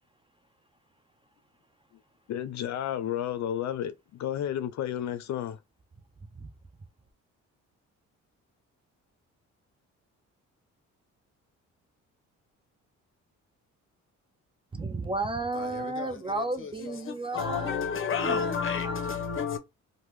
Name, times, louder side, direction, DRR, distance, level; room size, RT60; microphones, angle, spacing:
voice 1, 2.3-5.6, left 10 dB, 65° left, 0.5 m, -32 dB
voice 2, 14.7-17.9 18.3-18.6 18.8-19.0, right 2 dB, 20° right, 0.4 m, -33 dB
voice 3, 17.1-19.6, left 6 dB, 45° left, 0.9 m, -30 dB
2.9 x 2.2 x 3.2 m
cardioid pair, 90°, 30 cm